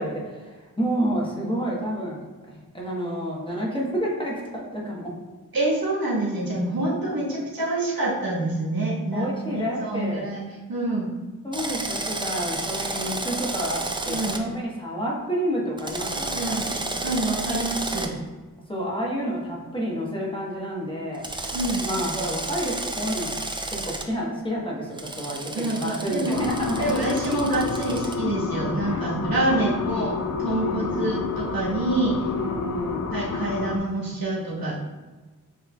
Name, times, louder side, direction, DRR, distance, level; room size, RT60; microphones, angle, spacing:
voice 1, 0.0-5.1 9.1-10.3 11.4-13.8 14.0-16.7 18.7-21.3 21.8-23.4 23.7-26.9 28.8-29.0 29.5-30.1 30.6-31.1 32.4-33.1, equal, 15° left, -4 dB, 1.0 m, -29 dB
voice 2, 5.5-10.4 10.7-11.1 14.1-14.4 16.3-16.6 17.0-18.1 21.5-21.8 25.5-26.4 26.8-32.3 33.1-34.7, right 2 dB, 80° right, -5 dB, 1.3 m, -26 dB
Drill, 11.5-14.4 15.8-18.1 21.2-24.0 25.0-28.1, right 2 dB, 15° right, 0.4 m, -31 dB
sound 1, 26.3-33.8, left 5 dB, 55° left, 0.5 m, -30 dB
7.1 x 3.2 x 2.2 m, 1.3 s
wide cardioid pair, 90°, 35 cm